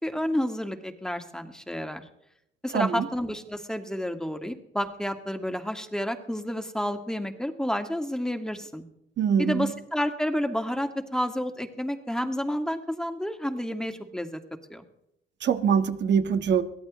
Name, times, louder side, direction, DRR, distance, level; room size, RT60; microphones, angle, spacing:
voice 1, 0.0-2.0 2.6-8.8 9.4-14.4 14.7-14.8, equal, 5° left, 5 dB, 2.0 m, -30 dB
voice 2, 2.7-3.1 9.2-9.7 15.4-16.6, right 7 dB, 65° right, 9 dB, 1.5 m, -23 dB
22.5 x 16.5 x 3.1 m, 0.83 s
cardioid pair, 90°, 20 cm